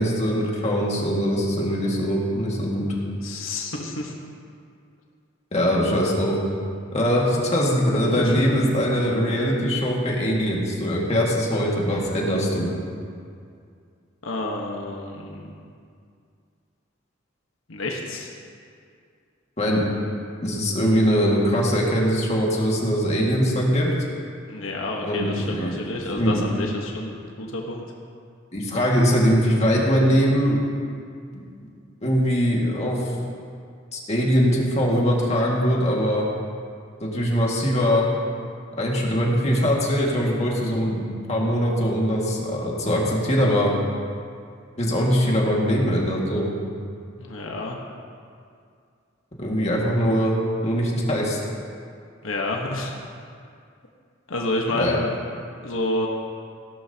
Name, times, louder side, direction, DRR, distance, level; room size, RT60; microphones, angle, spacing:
voice 1, 0.0-2.9 5.5-6.4 6.9-12.7 19.6-19.9 20.4-23.9 25.0-25.9 26.1-26.4 28.5-30.6 31.3-31.4 32.0-33.1 33.9-36.3 37.0-38.1 38.8-43.7 44.8-46.5 49.4-50.4 50.6-51.4 54.7-55.0, equal, 35° left, -3 dB, 2.0 m, -22 dB
voice 2, 3.1-4.1 8.2-8.3 14.2-15.5 17.7-18.3 24.5-27.8 47.2-47.8 52.2-52.9 54.3-55.1 55.6-56.1, left 2 dB, 80° left, 0 dB, 1.3 m, -29 dB
17.0 x 12.0 x 2.9 m, 2.3 s
head